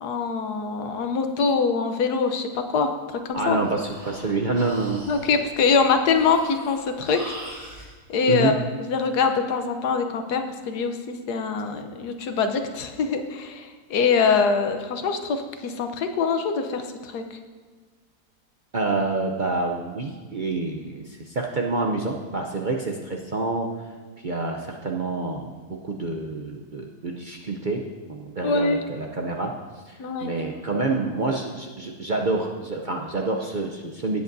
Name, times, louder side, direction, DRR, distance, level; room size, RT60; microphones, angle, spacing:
voice 1, 0.0-3.6 5.1-7.4 8.1-8.6 8.9-11.0 11.3-17.2 28.4-28.8 30.0-30.4 30.7-30.9, left 5 dB, 90° left, 7 dB, 1.4 m, -24 dB
Breathing, 3.3-7.9, right 1 dB, 25° right, 1.4 m, -42 dB
voice 2, 3.3-5.0 8.3-8.5 18.7-23.7 24.2-27.8 28.1-29.5 29.9-34.2, right 3 dB, 50° right, 0 dB, 0.6 m, -27 dB
17.5 x 8.0 x 2.7 m, 1.5 s
omnidirectional pair, 1.6 m